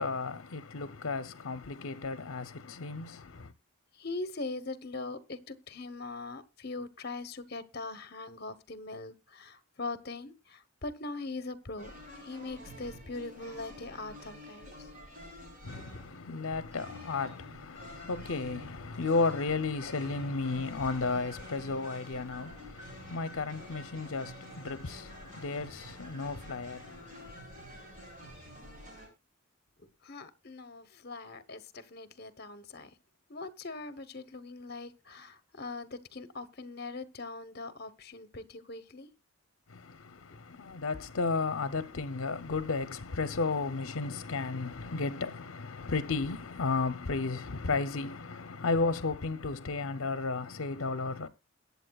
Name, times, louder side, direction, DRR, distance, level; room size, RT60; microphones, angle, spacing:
voice 1, 0.0-3.5 15.6-27.3 39.7-51.3, left 3 dB, 70° left, 0.7 m, -33 dB
voice 2, 4.0-11.9 12.2-14.7 15.9-16.0 29.8-32.9 33.3-39.1 40.3-40.4, left 3 dB, 50° left, 1.0 m, -41 dB
sound 1, 11.8-29.1, equal, 40° right, 6.7 m, -49 dB
22.0 x 8.2 x 2.3 m
head